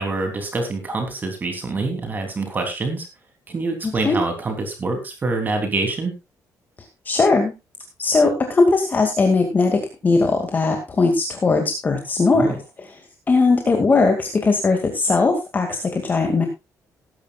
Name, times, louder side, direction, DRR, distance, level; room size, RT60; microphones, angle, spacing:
voice 1, 0.0-3.1 3.5-6.1 12.3-12.6, right 3 dB, 30° right, 4 dB, 3.2 m, -25 dB
voice 2, 3.8-4.2 7.1-7.5 8.0-12.5 12.8-13.0 13.3-16.5, left 3 dB, 30° left, 4 dB, 2.2 m, -19 dB
19.0 x 10.5 x 2.4 m, 0.25 s
cardioid pair, 135°, 6 cm